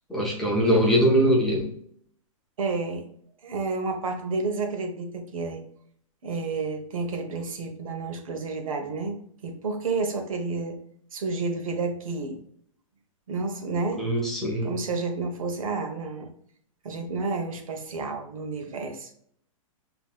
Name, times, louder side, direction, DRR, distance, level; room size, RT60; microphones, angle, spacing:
voice 1, 0.1-1.7 13.9-14.8, equal, ahead, -6 dB, 0.6 m, -22 dB
voice 2, 2.6-3.1 3.4-5.6 6.2-10.8 11.1-12.4 13.3-14.1 14.6-16.3 16.8-19.1, right 3 dB, 75° right, 5 dB, 1.0 m, -30 dB
5.4 x 3.0 x 2.3 m, 0.66 s
hypercardioid pair, 175°, 18 cm